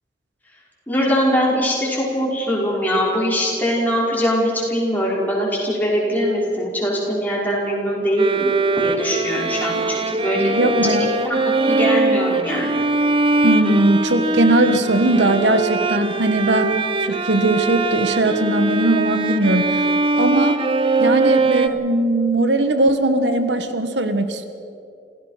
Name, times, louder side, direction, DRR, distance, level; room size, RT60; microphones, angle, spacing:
voice 1, 0.9-11.0 11.2-12.8, equal, 10° left, -5 dB, 5.4 m, -22 dB
Bowed string instrument, 8.2-21.7, right 2 dB, 30° right, 0.8 m, -21 dB
voice 2, 10.4-11.1 13.4-19.8 20.2-20.6 21.0-24.5, right 2 dB, 80° right, 8 dB, 1.4 m, -19 dB
28.0 x 16.0 x 5.9 m, 2.5 s
head